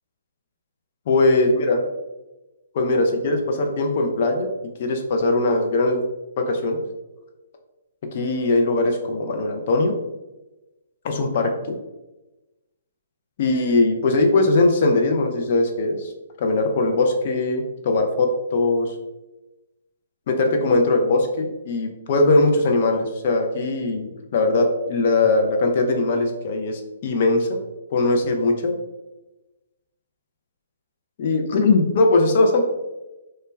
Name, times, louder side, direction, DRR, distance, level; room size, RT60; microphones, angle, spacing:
voice 1, 1.1-1.8 2.7-4.5 4.8-6.0 6.4-6.8 8.1-9.9 11.0-11.8 13.4-16.1 16.4-18.9 20.3-27.6 27.9-28.7 31.2-32.6, left 2 dB, 50° left, 4 dB, 0.4 m, -20 dB
2.1 x 2.1 x 3.2 m, 1.0 s
hypercardioid pair, 130°, 0 cm